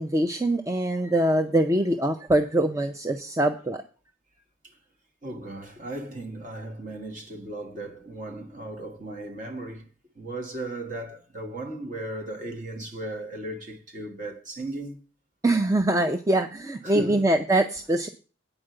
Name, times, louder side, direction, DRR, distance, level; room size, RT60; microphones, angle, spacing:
voice 1, 0.0-3.8 15.4-18.1, right 1 dB, 15° right, 0.4 m, -23 dB
voice 2, 5.2-9.9 10.1-15.0 16.8-17.2, right 1 dB, 40° right, 1.5 m, -36 dB
8.8 x 5.0 x 7.7 m
head